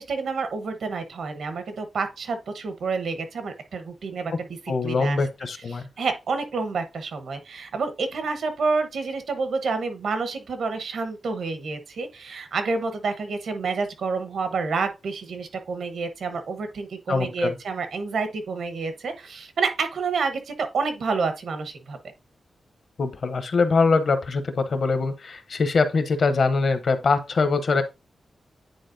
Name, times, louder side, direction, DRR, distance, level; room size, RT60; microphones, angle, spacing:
voice 1, 0.0-4.5 4.8-5.2 5.7-22.0, right 4 dB, 80° right, 1.0 m, -29 dB
voice 2, 4.7-5.8 17.1-17.6 23.0-27.8, left 4 dB, 50° left, 0.8 m, -23 dB
9.5 x 4.2 x 2.6 m
wide cardioid pair, 175°, 0 cm